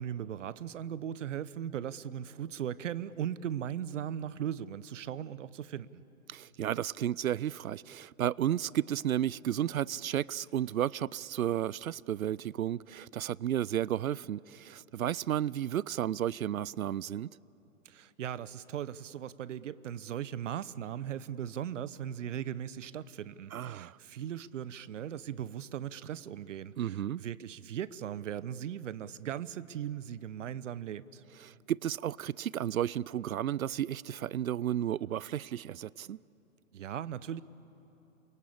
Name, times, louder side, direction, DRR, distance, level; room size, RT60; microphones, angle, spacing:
voice 1, 0.0-6.0 17.8-31.2 36.7-37.4, right 10 dB, 60° right, 1.0 m, -38 dB
voice 2, 6.3-17.3 23.5-24.0 26.8-27.2 31.4-36.2, right 11 dB, 85° right, 0.5 m, -33 dB
28.5 x 23.0 x 8.6 m
hypercardioid pair, 125°, 41 cm